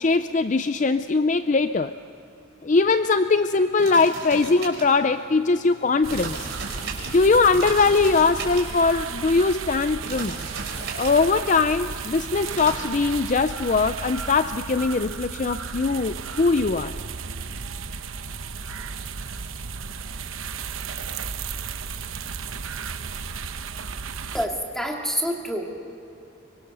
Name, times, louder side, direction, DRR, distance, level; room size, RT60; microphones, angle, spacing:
voice 1, 0.0-1.9 2.6-6.5 7.1-10.4 10.9-16.9, left 4 dB, 35° left, 11 dB, 0.4 m, -21 dB
sound 1, 2.8-12.8, right 4 dB, 55° right, 4.7 m, -38 dB
sound 2, 6.0-24.5, right 5 dB, 80° right, 0.9 m, -34 dB
voice 2, 24.3-25.8, equal, ahead, 0 dB, 2.4 m, -27 dB
25.0 x 23.5 x 6.7 m, 2.8 s
head